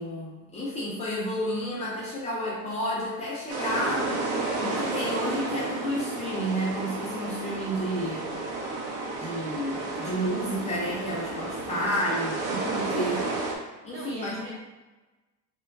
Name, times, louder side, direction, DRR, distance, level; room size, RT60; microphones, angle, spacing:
voice 1, 0.0-8.3 9.2-13.3 13.8-14.5, equal, 20° left, -7 dB, 0.3 m, -31 dB
sound 1, 3.5-13.6, right 3 dB, 75° right, 0.8 m, -32 dB
voice 2, 11.7-12.3 13.7-14.5, right 2 dB, 35° right, -4 dB, 0.9 m, -43 dB
3.0 x 2.3 x 3.3 m, 1.2 s
cardioid pair, 170°, 37 cm